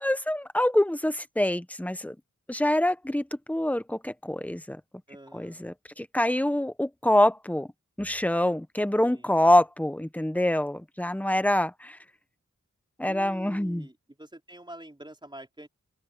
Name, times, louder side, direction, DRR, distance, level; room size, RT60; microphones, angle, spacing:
voice 1, 0.0-2.1 2.5-4.8 5.3-7.7 8.0-12.0 13.0-13.9, left 1 dB, 5° left, 1.1 m, -25 dB
voice 2, 5.1-5.6 9.0-9.3 13.1-13.9 14.2-15.7, right 1 dB, 15° right, 4.2 m, -45 dB
open air
wide cardioid pair, 70°, 29 cm